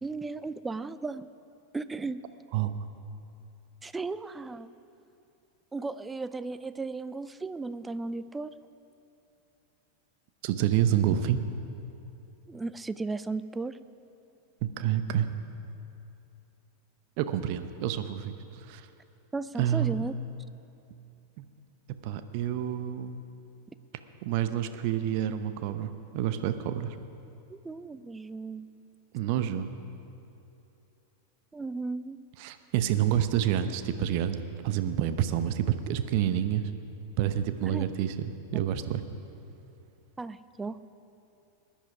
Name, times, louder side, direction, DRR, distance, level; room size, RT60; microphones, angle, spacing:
voice 1, 0.0-1.3 1.7-2.2 3.8-4.7 5.7-8.5 12.5-13.8 19.3-20.1 27.5-28.7 31.5-32.2 37.6-37.8 40.2-40.8, right 3 dB, 10° right, 14 dB, 0.4 m, -35 dB
voice 2, 10.4-11.4 14.6-15.3 17.2-18.9 19.6-20.1 21.4-21.5 21.9-23.2 24.2-27.0 29.1-29.7 32.4-34.4 34.6-36.7 37.2-39.0, right 10 dB, 45° right, 10 dB, 0.8 m, -28 dB
20.0 x 10.0 x 5.0 m, 2.8 s
figure-of-eight pair, 90°, 0 cm